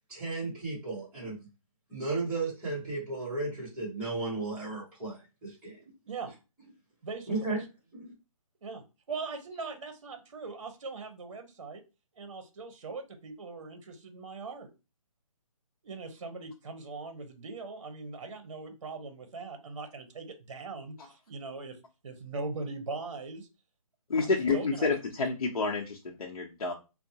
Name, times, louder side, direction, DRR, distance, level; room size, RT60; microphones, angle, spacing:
voice 1, 0.1-1.4 1.9-5.9 7.3-7.6 7.9-8.1, right 3 dB, 5° right, -9 dB, 1.1 m, -34 dB
voice 2, 7.0-7.6 8.6-11.8 12.2-14.7 15.8-21.8 22.0-23.5 24.2-24.9, right 4 dB, 55° right, 8 dB, 0.8 m, -40 dB
voice 3, 24.1-26.7, left 4 dB, 75° left, -1 dB, 0.7 m, -29 dB
2.6 x 2.0 x 2.7 m, 0.29 s
hypercardioid pair, 170°, 18 cm